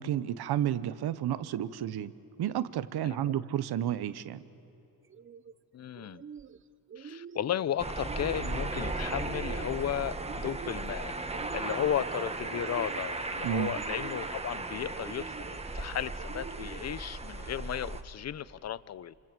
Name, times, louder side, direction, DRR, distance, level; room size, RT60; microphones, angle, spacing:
voice 1, 0.0-2.1 2.4-4.4 13.4-13.7, right 11 dB, 85° right, 1.0 m, -31 dB
sound 1, 5.0-5.5 5.9-6.6 6.9-7.6 8.0-8.7 9.1-9.8 10.2-11.0 11.3-12.0 12.4-13.2 13.6-14.4 14.9-15.6 16.2-17.0, right 6 dB, 35° right, 0.6 m, -46 dB
voice 2, 5.7-6.2 7.0-11.1 11.5-19.1, left 10 dB, 45° left, 0.6 m, -34 dB
sound 2, 7.8-18.0, right 2 dB, 15° right, 1.4 m, -36 dB
28.0 x 27.0 x 7.6 m
wide cardioid pair, 145°, 38 cm